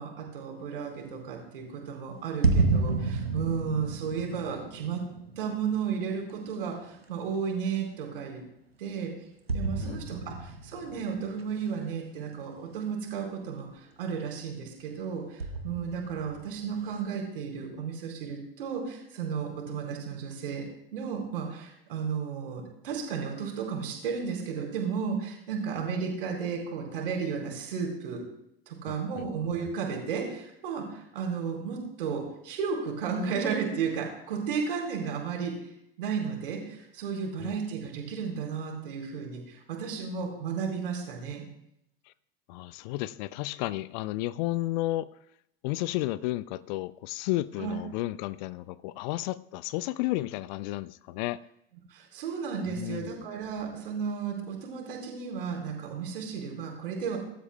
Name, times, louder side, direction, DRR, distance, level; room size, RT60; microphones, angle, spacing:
voice 1, 0.0-5.0 5.4-8.4 8.8-9.1 9.5-20.6 20.9-28.2 28.7-35.7 36.0-41.4 47.6-47.7 51.9-57.2, right 6 dB, 65° right, 0 dB, 4.4 m, -33 dB
sound 1, 2.4-7.2 7.7-7.8 9.5-11.7 12.4-12.5 15.4-16.8, right 3 dB, 90° right, 1.0 m, -31 dB
voice 2, 28.9-29.3 37.4-37.5 42.5-45.1 45.6-51.4 52.7-53.1, left 17 dB, 50° left, 20 dB, 0.5 m, -32 dB
23.5 x 12.5 x 2.3 m, 0.77 s
figure-of-eight pair, 75°, 30 cm